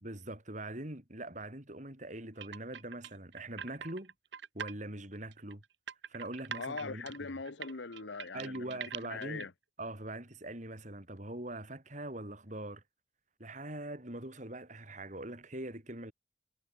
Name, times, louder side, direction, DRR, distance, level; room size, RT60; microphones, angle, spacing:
voice 1, 0.0-4.1 4.5-5.6 6.1-7.1 8.3-9.5 9.8-12.8 13.4-16.1, right 1 dB, 40° right, 3.9 m, -42 dB
sound 1, 2.4-4.7 5.1-9.4, right 7 dB, 70° right, 0.9 m, -43 dB
voice 2, 6.6-9.5, left 4 dB, 75° left, 1.1 m, -42 dB
head